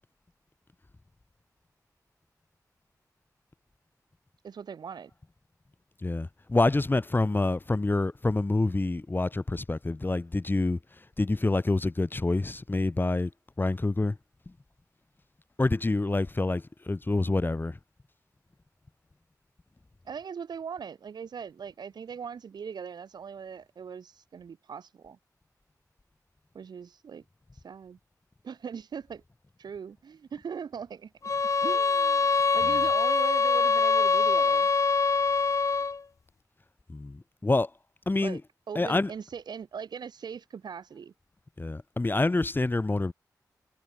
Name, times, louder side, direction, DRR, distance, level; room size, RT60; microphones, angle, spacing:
voice 1, 4.4-5.1 20.0-25.2 26.5-27.2 27.6-28.0 28.4-29.2 29.6-31.1 31.6-32.3 32.5-34.7 38.2-38.4 38.7-41.1, right 6 dB, 90° right, 5.1 m, -40 dB
voice 2, 6.0-10.8 11.2-13.3 13.6-14.2 15.6-17.8 36.9-37.7 38.1-38.4 38.8-39.1 41.6-43.1, left 2 dB, 30° left, 2.3 m, -27 dB
sound 1, 31.2-36.0, left 4 dB, 50° left, 0.7 m, -24 dB
cardioid pair, 65°, 7 cm